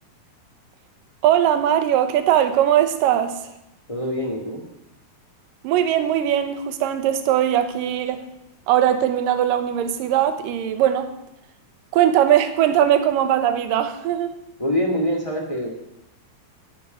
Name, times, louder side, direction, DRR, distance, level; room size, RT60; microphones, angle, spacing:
voice 1, 1.2-3.4 5.6-8.2 8.7-11.1 11.9-14.3, right 11 dB, 70° right, 9 dB, 2.6 m, -20 dB
voice 2, 3.9-4.6 14.6-15.7, equal, 40° left, 2 dB, 0.4 m, -24 dB
10.5 x 9.3 x 9.3 m, 0.87 s
omnidirectional pair, 4.3 m